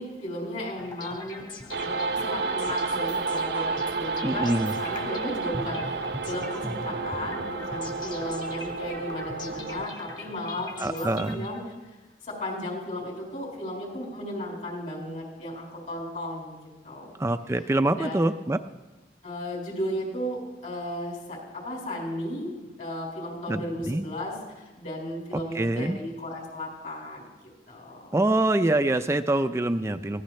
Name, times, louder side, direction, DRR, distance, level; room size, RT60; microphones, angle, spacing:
voice 1, 0.0-11.6 12.3-17.1 17.9-18.2 19.2-22.5 22.8-27.3 27.7-28.1, left 1 dB, 50° left, -2 dB, 5.1 m, -35 dB
sound 1, 0.8-11.8, left 2 dB, 25° left, 1.7 m, -41 dB
sound 2, 1.7-9.9, right 4 dB, 70° right, 0.6 m, -31 dB
voice 2, 4.2-4.7 10.8-11.5 17.2-18.6 23.5-24.0 25.5-26.0 28.1-30.2, right 2 dB, 15° right, 9 dB, 0.4 m, -25 dB
21.5 x 16.0 x 3.2 m, 1.1 s
head